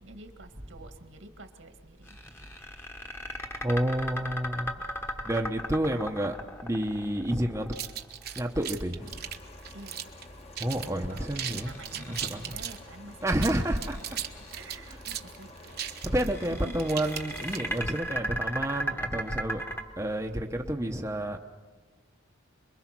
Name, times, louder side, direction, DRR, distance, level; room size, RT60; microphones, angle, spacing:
voice 1, 0.0-2.2 4.2-4.3 9.7-10.1 11.1-13.5 14.5-15.8 16.2-16.3 16.6-16.7, right 2 dB, 75° right, 6 dB, 2.0 m, -48 dB
sound 1, 2.1-8.3 11.1-12.7 13.2-14.6 15.8-19.8, right 1 dB, 10° left, 1.2 m, -37 dB
voice 2, 3.6-6.4 6.6-7.7 8.3-9.2 10.6-12.6 13.2-14.0 14.6-15.0 16.1-19.6 20.0-21.4, right 1 dB, 15° right, 2 dB, 0.9 m, -30 dB
sound 2, 7.7-10.2 10.5-10.9 11.2-12.8 13.3-17.9, right 10 dB, 50° right, 1.1 m, -37 dB
sound 3, 9.0-18.0, left 2 dB, 30° left, 1.3 m, -49 dB
27.0 x 22.0 x 6.1 m, 1.4 s
head